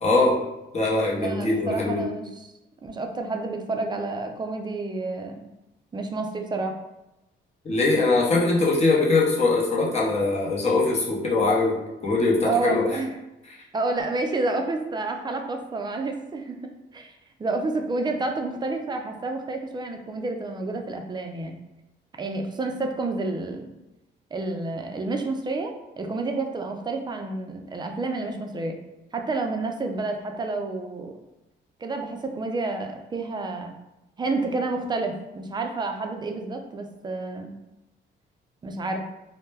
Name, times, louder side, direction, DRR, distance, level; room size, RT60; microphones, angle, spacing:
voice 1, 0.0-0.4 0.7-2.1 7.6-12.9 13.5-13.6, left 3 dB, 35° left, -4 dB, 0.7 m, -22 dB
voice 2, 1.2-2.5 2.8-5.4 5.9-6.7 12.4-13.1 13.7-16.6 16.9-17.1 17.4-21.6 22.2-23.6 24.3-25.7 26.0-28.8 29.1-31.1 31.8-33.7 34.2-37.5 38.6-39.0, right 3 dB, 20° right, 3 dB, 0.4 m, -29 dB
2.1 x 2.1 x 3.3 m, 0.95 s
cardioid pair, 90°, 20 cm